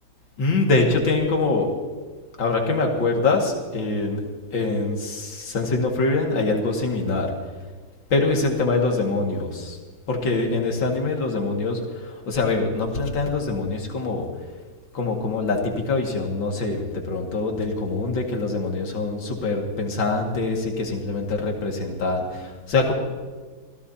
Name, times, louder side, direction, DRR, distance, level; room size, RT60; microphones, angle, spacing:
voice 1, 0.4-1.7 2.4-4.2 4.5-7.3 8.1-9.8 10.1-14.2 14.9-22.9, left 3 dB, 80° left, 1 dB, 2.8 m, -24 dB
25.0 x 17.0 x 2.8 m, 1.4 s
omnidirectional pair, 2.0 m